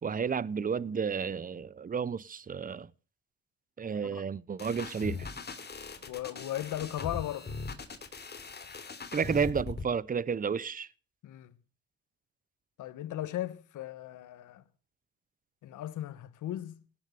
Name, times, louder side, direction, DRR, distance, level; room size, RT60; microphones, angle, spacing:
voice 1, 0.0-2.9 3.8-5.3 9.1-10.9, right 6 dB, 30° right, 0.7 m, -31 dB
sound 1, 4.6-9.9, left 4 dB, 35° left, 3.1 m, -40 dB
voice 2, 6.0-7.5 11.2-11.6 12.8-14.6 15.6-16.8, left 13 dB, 80° left, 1.5 m, -37 dB
18.0 x 9.8 x 6.7 m
cardioid pair, 90°, 30 cm